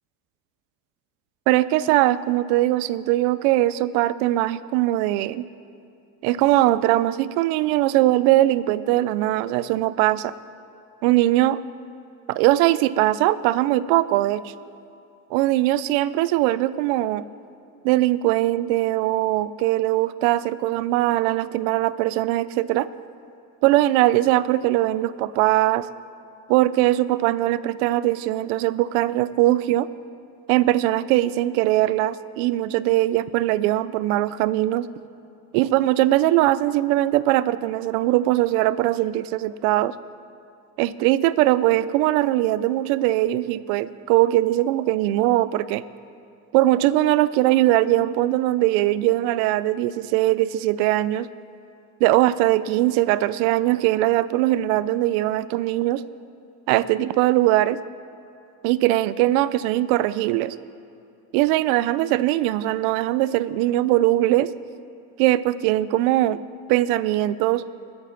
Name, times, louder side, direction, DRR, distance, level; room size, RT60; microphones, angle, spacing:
voice 1, 1.5-5.4 6.2-10.3 11.0-11.6 12.3-14.5 15.3-17.2 17.8-22.9 23.6-25.9 26.5-29.9 30.5-34.9 35.5-39.9 40.8-45.8 46.5-51.3 52.0-56.0 56.7-57.8 58.6-60.6 61.3-64.5 65.2-66.4 66.7-67.6, right 15 dB, 90° right, 17 dB, 0.6 m, -21 dB
21.0 x 7.9 x 5.8 m, 2.6 s
cardioid pair, 145°, 40 cm